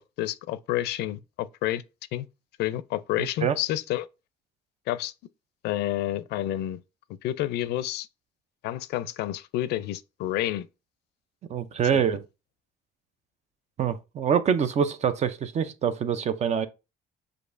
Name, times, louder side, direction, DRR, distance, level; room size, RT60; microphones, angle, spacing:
voice 1, 0.0-1.8 2.1-2.3 2.6-4.1 4.9-5.1 5.6-6.8 7.2-8.1 8.6-10.7 11.9-12.2, left 14 dB, 75° left, 0.4 m, -29 dB
voice 2, 3.2-3.6 11.5-12.3 13.8-16.7, right 7 dB, 40° right, 0.5 m, -25 dB
6.5 x 2.6 x 2.5 m
cardioid pair, 110°, 17 cm